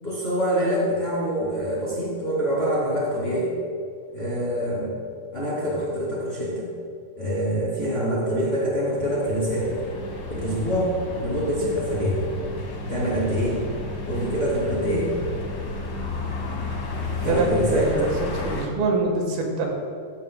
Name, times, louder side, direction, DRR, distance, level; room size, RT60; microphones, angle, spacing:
voice 1, 0.0-3.5 4.1-4.9 5.3-6.7 7.2-9.7 10.3-10.9 11.2-12.2 12.9-13.6 14.1-15.1 17.2-17.9, equal, 20° left, -6 dB, 2.0 m, -25 dB
sound 1, 8.8-18.7, left 1 dB, 50° left, 1.3 m, -32 dB
voice 2, 17.3-19.7, right 3 dB, 85° right, 1 dB, 3.5 m, -25 dB
16.0 x 11.5 x 2.3 m, 2.4 s
omnidirectional pair, 4.2 m